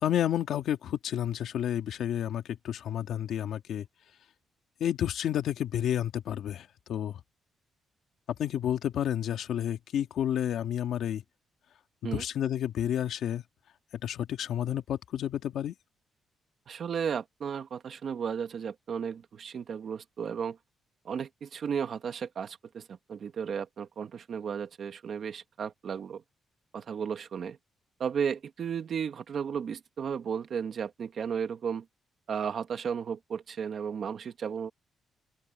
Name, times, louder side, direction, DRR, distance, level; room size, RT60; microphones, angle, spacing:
voice 1, 0.0-3.9 4.8-7.2 8.4-11.2 12.0-13.4 14.0-15.7, left 10 dB, 65° left, 2.2 m, -30 dB
voice 2, 16.7-20.6 21.1-26.2 26.7-27.6 28.0-31.9 32.3-34.7, right 7 dB, 45° right, 1.9 m, -34 dB
open air
cardioid pair, 165°, 0 cm